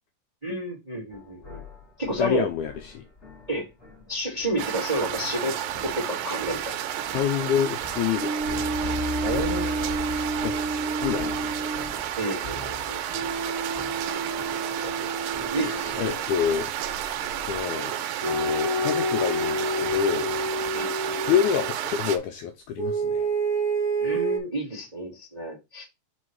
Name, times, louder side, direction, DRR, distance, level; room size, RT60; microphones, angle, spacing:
voice 1, 0.4-1.6 2.0-2.5 3.5-3.7 4.1-6.7 9.2-10.0 12.2-13.0 14.8-14.9 15.5-16.2 20.7-20.9 24.0-25.8, right 1 dB, 15° right, 1.4 m, -30 dB
sound 1, 1.1-4.7 5.0-17.6, left 5 dB, 30° left, 1.3 m, -41 dB
voice 2, 2.2-3.0 7.1-8.7 10.4-11.6 15.6-16.7 17.5-18.0 18.2-20.3 21.3-23.3, left 8 dB, 80° left, 1.8 m, -28 dB
sound 2, 4.6-22.2, right 11 dB, 85° right, 2.4 m, -31 dB
sound 3, 8.2-11.9 13.1-16.2 18.2-21.7 22.8-24.4, right 2 dB, 70° right, 0.7 m, -29 dB
5.1 x 4.5 x 4.5 m
omnidirectional pair, 4.0 m